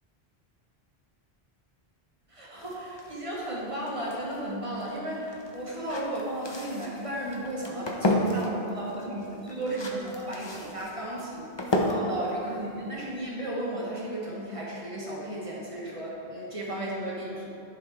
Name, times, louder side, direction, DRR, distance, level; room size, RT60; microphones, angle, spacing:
voice 1, 2.3-11.5 11.9-17.5, right 1 dB, 30° right, -5 dB, 1.5 m, -34 dB
sound 1, 2.6-13.5, left 1 dB, 30° left, 0.6 m, -33 dB
11.5 x 5.0 x 3.6 m, 2.8 s
omnidirectional pair, 1.1 m